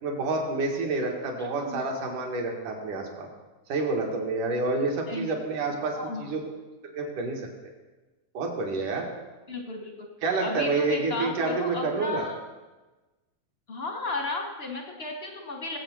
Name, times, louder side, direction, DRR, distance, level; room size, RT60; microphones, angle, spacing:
voice 1, 0.0-3.3 3.7-6.4 6.8-7.4 8.4-9.1 10.2-12.3, right 3 dB, 85° right, 1 dB, 3.4 m, -28 dB
voice 2, 1.4-1.8 5.1-5.3 5.9-6.3 9.5-10.1 10.4-12.4 13.7-15.8, left 2 dB, 70° left, 2 dB, 0.5 m, -34 dB
19.0 x 8.2 x 6.2 m, 1.2 s
omnidirectional pair, 3.5 m